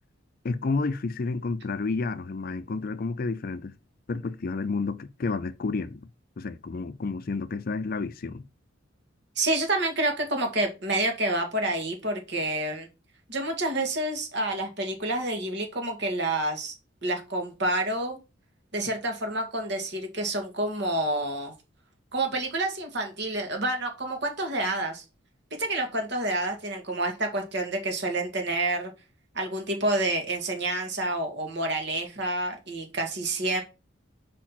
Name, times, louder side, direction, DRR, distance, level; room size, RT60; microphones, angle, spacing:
voice 1, 0.4-3.7 4.1-6.1 6.4-8.5, left 3 dB, 45° left, 0.4 m, -30 dB
voice 2, 9.4-12.9 13.3-16.8 17.0-18.2 18.7-21.5 22.1-25.0 25.6-28.9 29.3-33.6, right 2 dB, 55° right, 2.0 m, -28 dB
5.0 x 4.4 x 5.8 m
head